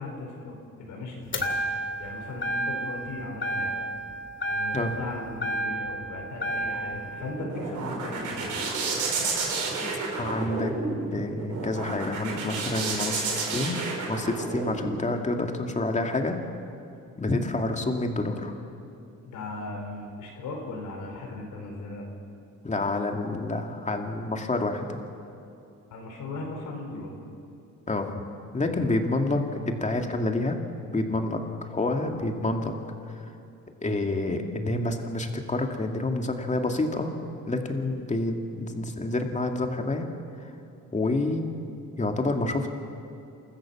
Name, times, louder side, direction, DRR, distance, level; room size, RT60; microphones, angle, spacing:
voice 1, 0.0-1.5 2.0-3.9 4.5-8.5 19.2-22.0 25.9-27.1 28.6-28.9, left 2 dB, 85° left, 2 dB, 4.8 m, -38 dB
sound 1, 1.3-2.1 2.4-3.1 3.4-4.1 4.4-6.0 6.4-7.0, right 1 dB, 40° left, 2.6 m, -30 dB
sound 2, 7.0-15.0, right 4 dB, 80° right, 4.8 m, -31 dB
voice 2, 9.8-10.7 11.1-13.8 14.1-16.4 17.2-18.5 22.6-25.0 27.9-28.1 28.5-30.6 30.9-32.7 33.8-37.1 37.5-40.1 40.9-41.5 42.0-42.7, left 2 dB, 25° left, 3 dB, 2.4 m, -28 dB
28.0 x 14.5 x 7.3 m, 2.7 s
cardioid pair, 90°, 30 cm